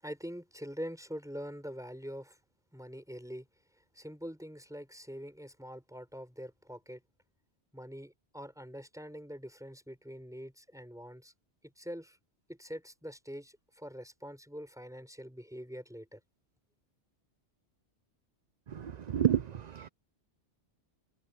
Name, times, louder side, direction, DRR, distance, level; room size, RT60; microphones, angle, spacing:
voice 1, 0.0-2.4 2.7-3.5 3.9-7.0 7.7-11.3 11.6-12.2 12.5-16.2, equal, 5° right, 5.2 m, -44 dB
voice 2, 18.7-19.9, right 9 dB, 50° right, 0.6 m, -30 dB
omnidirectional pair, 1.1 m